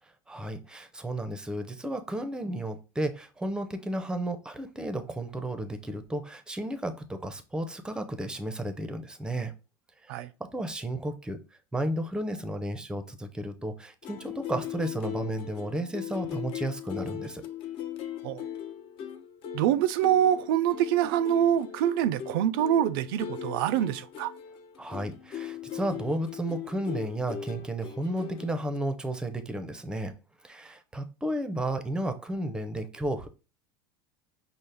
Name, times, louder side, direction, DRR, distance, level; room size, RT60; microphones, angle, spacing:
voice 1, 0.3-9.5 10.0-11.4 11.7-17.4 24.8-30.1 30.4-33.3, right 1 dB, 5° right, 0.5 m, -33 dB
sound 1, 14.0-28.8, left 9 dB, 50° left, 0.5 m, -39 dB
voice 2, 19.5-24.3, right 10 dB, 70° right, 0.4 m, -25 dB
5.4 x 2.0 x 3.2 m
supercardioid pair, 105°, 12 cm